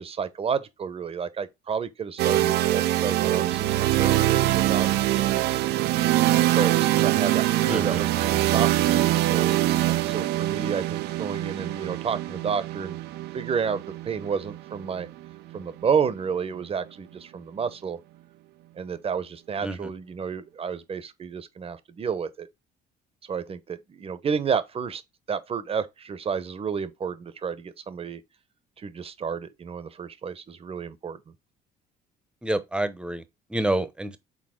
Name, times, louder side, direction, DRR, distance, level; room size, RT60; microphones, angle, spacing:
voice 1, 0.0-5.5 6.6-9.6 9.9-13.0 13.3-15.1 15.5-18.0 18.8-22.5 23.2-25.0 25.3-28.2 28.8-31.3, right 6 dB, 35° right, 0.9 m, -31 dB
sound 1, 2.2-16.0, right 15 dB, 80° right, 0.6 m, -24 dB
voice 2, 7.7-8.0 19.6-19.9 32.4-33.2 33.5-34.2, right 1 dB, 5° right, 0.9 m, -28 dB
6.4 x 4.1 x 3.8 m
cardioid pair, 110°, 17 cm